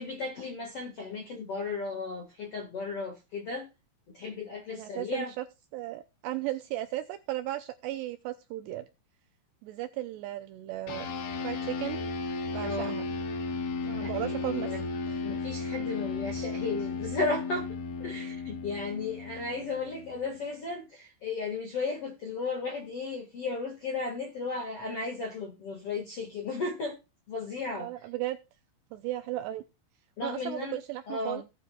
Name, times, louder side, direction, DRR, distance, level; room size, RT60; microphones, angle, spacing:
voice 1, 0.0-3.7 4.1-5.3 12.6-13.0 13.9-14.8 15.2-27.0 27.3-27.9 30.2-30.8 31.1-31.4, left 3 dB, 55° left, 1.6 m, -35 dB
voice 2, 4.7-5.4 5.7-8.9 9.6-11.1 11.4-12.0 12.5-13.1 13.8-14.7 15.1-15.2 27.8-28.4 28.9-29.6 30.2-31.4, right 15 dB, 80° right, 2.5 m, -35 dB
sound 1, 10.9-20.6, left 4 dB, 75° left, 4.5 m, -35 dB
18.0 x 9.3 x 2.3 m
omnidirectional pair, 5.5 m